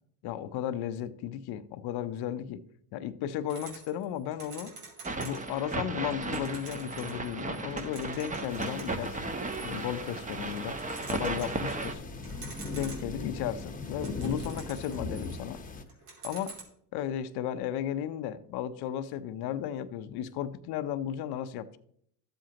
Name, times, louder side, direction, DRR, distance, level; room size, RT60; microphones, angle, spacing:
voice 1, 0.2-2.6 2.9-4.7 5.2-9.2 9.6-10.8 11.1-12.0 12.7-15.6 16.2-16.6 16.9-21.8, left 10 dB, 60° left, 0.8 m, -34 dB
sound 1, 3.5-5.6 5.9-10.3 10.6-11.9 12.2-13.3 13.7-15.6 15.9-16.6, right 4 dB, 85° right, 2.8 m, -48 dB
Radio Static Off Station, 5.0-11.9, right 2 dB, 15° right, 1.0 m, -35 dB
sound 2, 8.5-15.8, left 3 dB, 20° left, 1.1 m, -40 dB
13.0 x 7.7 x 2.9 m
supercardioid pair, 90°, 44 cm